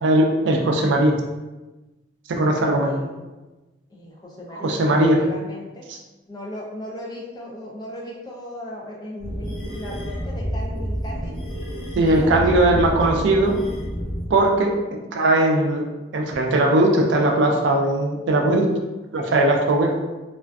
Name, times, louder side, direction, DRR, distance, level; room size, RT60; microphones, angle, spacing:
voice 1, 0.0-1.2 2.3-3.0 4.6-5.2 5.9-6.0 12.0-13.5 14.3-15.8 16.1-18.7 19.1-19.9, right 1 dB, 75° right, 2 dB, 0.4 m, -19 dB
voice 2, 2.8-3.3 3.9-5.8 6.3-11.4 12.0-13.2, left 1 dB, 20° left, -3 dB, 0.4 m, -37 dB
sound 1, 9.2-14.4, equal, 40° left, 0.8 m, -29 dB
2.4 x 2.3 x 2.2 m, 1.1 s
head